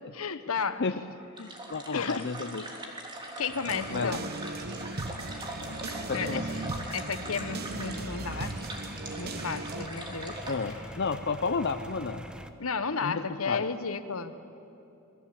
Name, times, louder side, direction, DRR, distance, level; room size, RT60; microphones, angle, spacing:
voice 1, 0.1-0.8 1.9-2.3 3.4-4.2 5.2-5.4 5.7-6.4 6.9-8.5 9.2-10.4 12.6-14.3, left 5 dB, 70° left, 11 dB, 1.2 m, -33 dB
voice 2, 1.4-2.7 3.9-4.2 6.1-6.5 10.5-12.2 13.0-13.6, left 4 dB, 55° left, 8 dB, 0.7 m, -32 dB
sound 1, 1.4-10.6, right 1 dB, 20° right, 3.2 m, -41 dB
sound 2, 3.5-12.5, equal, 5° right, 1.0 m, -45 dB
sound 3, 3.6-9.9, right 2 dB, 45° right, 1.0 m, -38 dB
28.0 x 20.0 x 8.5 m, 2.9 s
head